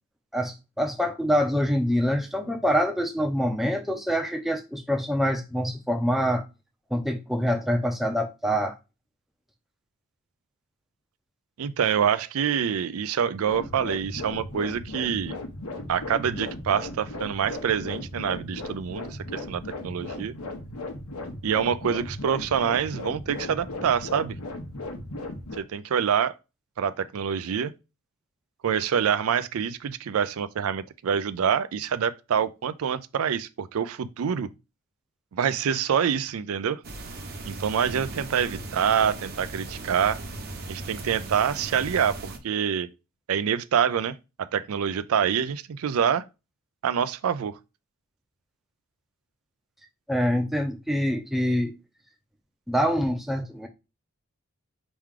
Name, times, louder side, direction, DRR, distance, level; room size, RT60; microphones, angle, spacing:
voice 1, 0.3-6.4 6.9-8.7 50.1-51.7 52.7-53.7, equal, ahead, 0.5 m, -25 dB
voice 2, 11.6-15.4 15.9-20.3 21.4-24.4 25.6-26.4 26.8-27.7 28.6-34.5 35.3-36.8 37.5-40.2 40.7-42.9 43.3-46.2 46.8-47.6, right 7 dB, 75° right, 0.4 m, -26 dB
sound 1, 13.5-25.6, left 2 dB, 90° left, 0.9 m, -36 dB
sound 2, 36.8-42.4, right 2 dB, 45° right, 0.8 m, -38 dB
4.6 x 3.0 x 3.7 m
head